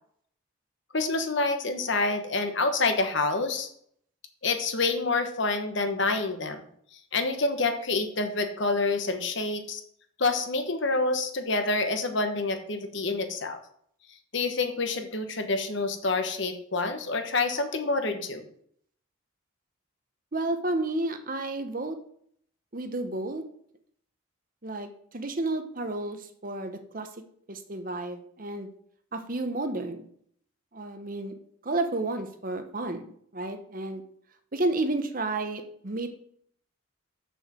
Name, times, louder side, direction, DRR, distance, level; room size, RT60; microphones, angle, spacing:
voice 1, 0.9-3.7 4.4-6.6 7.1-9.8 10.2-13.6 14.3-18.4, left 3 dB, 55° left, 7 dB, 1.1 m, -27 dB
voice 2, 20.3-22.0 22.7-23.4 24.6-27.1 27.5-28.7 29.1-30.1 30.7-31.3 31.6-34.0 34.5-36.1, right 2 dB, 40° right, 8 dB, 0.9 m, -31 dB
7.1 x 6.5 x 6.1 m, 0.65 s
head